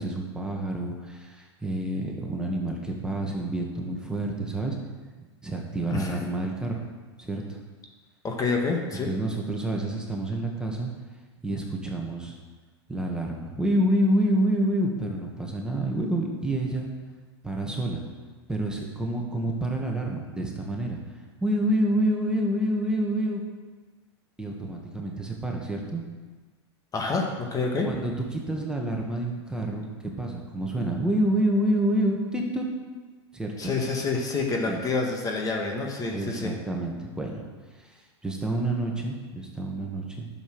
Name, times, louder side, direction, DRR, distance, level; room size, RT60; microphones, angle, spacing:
voice 1, 0.0-4.8 5.2-6.9 7.2-7.6 8.9-10.9 11.4-12.4 12.9-16.9 17.4-18.0 18.5-23.4 24.4-26.0 27.8-29.9 30.2-32.7 33.3-33.7 34.7-34.8 36.1-40.3, right 1 dB, 5° right, 0 dB, 1.9 m, -28 dB
voice 2, 8.2-9.1 26.9-27.9 33.6-36.5, left 4 dB, 25° left, 1 dB, 1.7 m, -27 dB
11.0 x 7.2 x 6.3 m, 1.4 s
hypercardioid pair, 105°, 15 cm